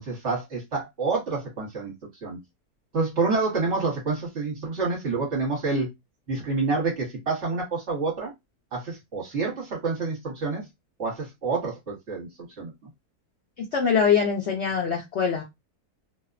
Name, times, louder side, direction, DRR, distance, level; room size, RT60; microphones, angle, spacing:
voice 1, 0.0-1.9 2.2-2.4 2.9-5.9 6.3-8.3 8.7-10.7 11.0-12.3 12.6-12.7, right 4 dB, 50° right, 1.3 m, -28 dB
voice 2, 13.6-15.4, left 6 dB, 65° left, 0.7 m, -23 dB
2.8 x 2.0 x 2.4 m
omnidirectional pair, 1.6 m